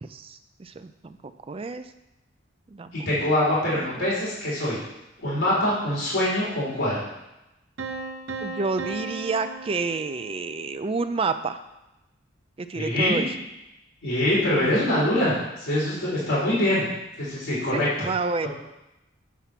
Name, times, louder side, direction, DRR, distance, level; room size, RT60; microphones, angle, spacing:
voice 1, 0.0-1.2 1.5-1.9 2.7-2.9 3.2-3.3 3.7-4.1 8.4-11.6 12.6-13.3 17.7-18.5, right 4 dB, 30° right, 10 dB, 0.4 m, -29 dB
voice 2, 3.0-4.8 5.2-7.0 12.7-13.2 14.0-16.8 17.2-18.1, left 1 dB, 80° left, -8 dB, 3.2 m, -24 dB
Piano, 7.8-10.7, right 3 dB, 70° right, 0.8 m, -36 dB
8.4 x 4.5 x 5.8 m, 0.94 s
head